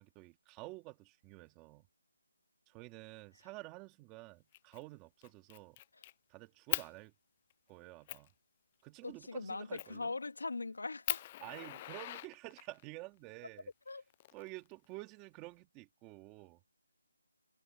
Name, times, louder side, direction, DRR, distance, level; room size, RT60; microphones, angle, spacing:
voice 1, 0.0-1.8 2.7-5.8 6.3-7.1 7.7-8.3 8.8-10.1 11.4-13.7 14.3-16.6, right 21 dB, 10° right, 2.2 m, -50 dB
Fire, 4.5-4.8 5.2-6.1 6.7-6.9 7.5-7.6 8.1-8.3 9.8-10.0 10.5-10.6 11.0-12.8 13.9-14.8, left 14 dB, 20° left, 0.4 m, -40 dB
voice 2, 9.0-11.2 13.9-14.0, left 3 dB, 80° left, 2.2 m, -40 dB
hypercardioid pair, 170°, 0 cm